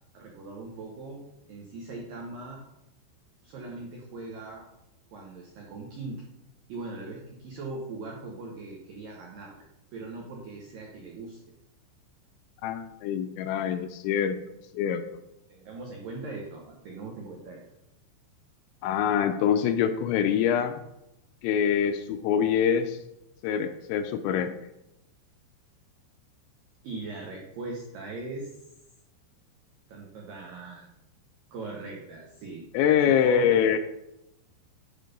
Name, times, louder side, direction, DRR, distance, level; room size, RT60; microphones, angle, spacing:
voice 1, 0.1-1.2 1.5-2.6 3.4-4.6 5.1-6.2 6.7-9.7 9.9-11.4 15.5-17.7 26.8-28.5 29.9-30.9 31.5-32.6 33.0-33.5, right 3 dB, 80° right, -1 dB, 2.0 m, -40 dB
voice 2, 12.6-14.4 14.7-15.0 18.8-20.8 21.4-23.0 23.4-24.6 32.7-33.8, left 8 dB, 85° left, 8 dB, 2.7 m, -24 dB
10.5 x 4.0 x 5.2 m, 0.87 s
omnidirectional pair, 5.5 m